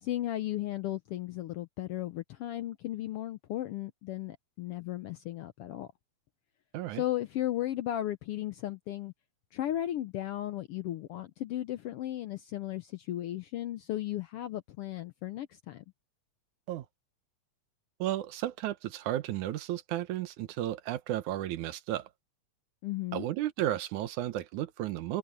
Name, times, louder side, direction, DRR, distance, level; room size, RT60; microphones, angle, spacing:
voice 1, 0.0-5.9 6.9-9.1 9.5-15.8 22.8-23.3, left 13 dB, 75° left, 1.3 m, -35 dB
voice 2, 6.7-7.0 16.7-16.9 18.0-22.1 23.1-25.2, right 13 dB, 90° right, 2.5 m, -33 dB
omnidirectional pair, 3.3 m